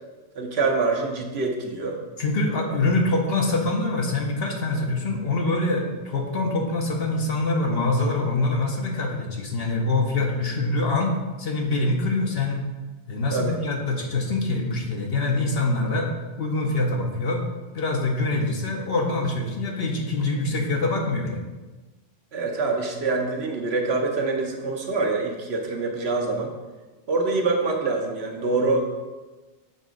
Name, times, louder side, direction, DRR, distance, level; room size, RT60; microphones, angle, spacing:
voice 1, 0.3-2.0 2.7-2.8 13.3-13.6 22.3-26.5 27.1-28.9, right 3 dB, 60° right, 1 dB, 1.1 m, -25 dB
voice 2, 2.2-11.1 11.4-12.6 13.1-16.1 16.4-17.5 17.7-21.4, left 2 dB, 60° left, 1 dB, 1.0 m, -24 dB
6.6 x 3.6 x 5.0 m, 1.2 s
omnidirectional pair, 1.2 m